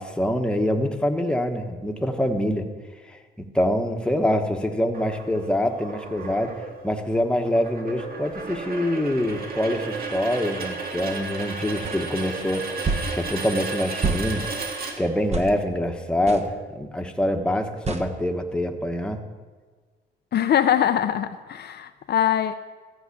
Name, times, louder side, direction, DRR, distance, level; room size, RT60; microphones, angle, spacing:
voice 1, 0.0-2.7 3.1-12.7 13.1-14.4 15.0-19.2, left 1 dB, 5° left, 4 dB, 1.2 m, -25 dB
sound 1, 4.9-15.5, right 4 dB, 50° right, 1.9 m, -34 dB
sound 2, 11.8-12.0 12.8-13.1 14.0-14.3 15.3-15.5 16.3-16.5 17.9-18.1, right 4 dB, 35° right, 1.1 m, -26 dB
voice 2, 20.3-22.5, left 10 dB, 55° left, 9 dB, 0.6 m, -22 dB
14.5 x 5.6 x 8.4 m, 1.5 s
cardioid pair, 90°, 20 cm